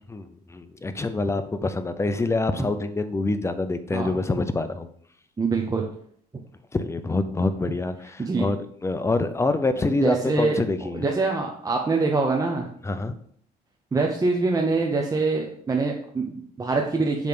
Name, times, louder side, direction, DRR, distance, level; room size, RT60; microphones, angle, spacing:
voice 1, 0.1-4.9 6.7-11.0 12.8-13.1, left 3 dB, 15° left, 10 dB, 0.6 m, -26 dB
voice 2, 5.4-5.8 8.2-8.5 9.9-10.6 10.9-12.7 13.9-17.3, right 3 dB, 20° right, 1 dB, 0.9 m, -24 dB
7.1 x 3.3 x 5.9 m, 0.63 s
cardioid pair, 110°, 17 cm